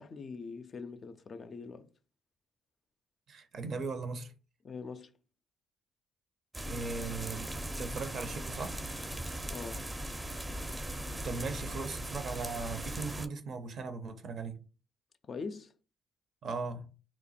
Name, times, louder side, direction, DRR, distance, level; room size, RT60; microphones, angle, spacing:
voice 1, 0.0-1.9 4.6-5.1 9.5-9.9 15.2-15.7, left 4 dB, 45° left, 0.4 m, -43 dB
voice 2, 3.3-4.3 6.7-8.8 11.1-14.6 16.4-16.9, right 4 dB, 60° right, 0.6 m, -38 dB
sound 1, 6.5-13.3, right 1 dB, 15° right, 0.5 m, -39 dB
2.9 x 2.2 x 4.1 m
hypercardioid pair, 55°, 0 cm